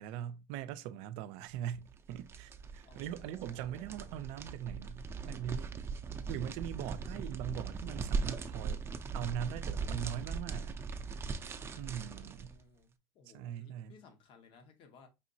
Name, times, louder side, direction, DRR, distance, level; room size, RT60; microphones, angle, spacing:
voice 1, 0.0-5.7 6.3-8.9 9.1-10.8 11.8-12.5 13.3-13.9, right 10 dB, 80° right, 0.5 m, -41 dB
sound 1, 1.9-12.5, right 5 dB, 25° right, 0.5 m, -39 dB
voice 2, 2.8-4.1 11.6-15.1, left 4 dB, 65° left, 1.1 m, -61 dB
5.1 x 3.0 x 2.7 m
cardioid pair, 115°, 10 cm